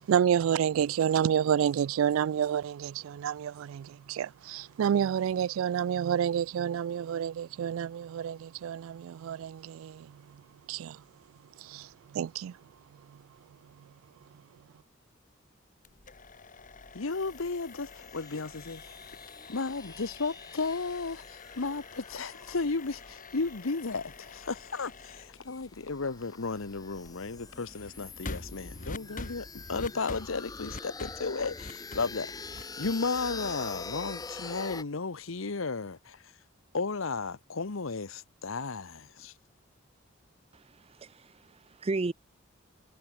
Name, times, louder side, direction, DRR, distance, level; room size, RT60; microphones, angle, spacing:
voice 1, 0.1-10.1 10.7-11.0 11.6-12.6, right 9 dB, 85° right, 0.3 m, -29 dB
sound 1, 15.8-33.8, left 2 dB, 40° left, 2.3 m, -47 dB
voice 2, 16.9-19.0 19.5-36.3 36.7-39.3, left 4 dB, 85° left, 1.1 m, -34 dB
sound 2, 17.1-34.8, left 4 dB, 20° left, 0.6 m, -46 dB
voice 3, 40.5-42.1, right 3 dB, 30° right, 0.5 m, -35 dB
head